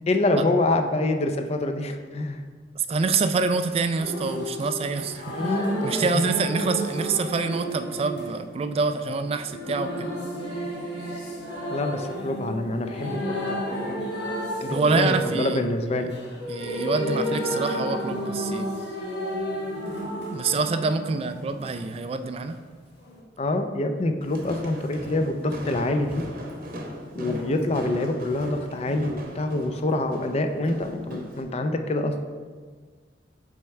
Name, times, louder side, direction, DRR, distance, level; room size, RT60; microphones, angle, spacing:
voice 1, 0.1-2.4 5.3-5.9 11.7-14.0 14.6-16.1 23.4-26.2 27.1-32.1, left 2 dB, 35° left, 6 dB, 0.5 m, -26 dB
voice 2, 2.8-5.3 5.8-10.1 14.7-15.6 16.5-18.7 20.3-22.6, right 4 dB, 35° right, 10 dB, 0.3 m, -26 dB
sound 1, 4.0-21.8 23.1-23.2, equal, 65° left, 1.4 m, -32 dB
Walk footsteps, 24.2-31.4, equal, 55° right, 0.8 m, -38 dB
6.3 x 3.5 x 4.4 m, 1.5 s
head